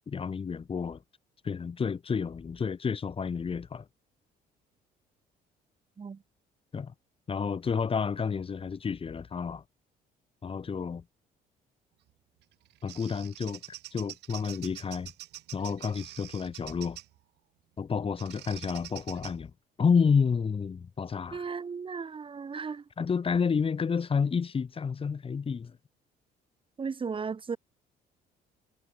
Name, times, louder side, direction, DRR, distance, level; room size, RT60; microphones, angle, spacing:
voice 1, 0.1-1.0 1.4-3.9 6.7-6.9 7.3-9.6 10.4-11.0 12.8-13.6 13.9-15.1 15.5-17.0 17.8-19.5 19.8-21.5 23.0-25.8, left 6 dB, 35° left, 5.4 m, -30 dB
Bird vocalization bird call bird song, 12.4-17.2 18.2-19.3, right 17 dB, 80° right, 6.2 m, -46 dB
voice 2, 21.3-22.8 26.8-27.6, right 5 dB, 30° right, 5.8 m, -35 dB
cardioid pair, 110°, 17 cm